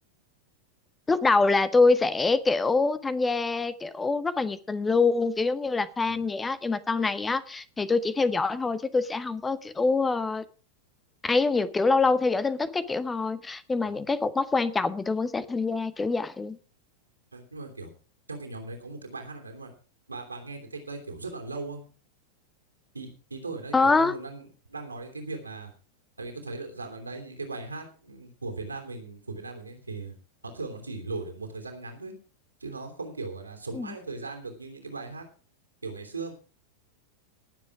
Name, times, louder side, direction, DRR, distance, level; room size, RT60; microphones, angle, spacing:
voice 1, 1.1-10.4 11.2-16.6 23.7-24.1 33.7-33.9, left 3 dB, 15° left, 0.9 m, -25 dB
voice 2, 17.3-17.9 18.3-19.7 20.1-21.8 22.9-25.7 26.2-30.1 30.4-32.2 32.6-35.3 35.8-36.3, right 3 dB, 80° right, 3.2 m, -38 dB
19.0 x 7.5 x 4.8 m
figure-of-eight pair, 90°, 0 cm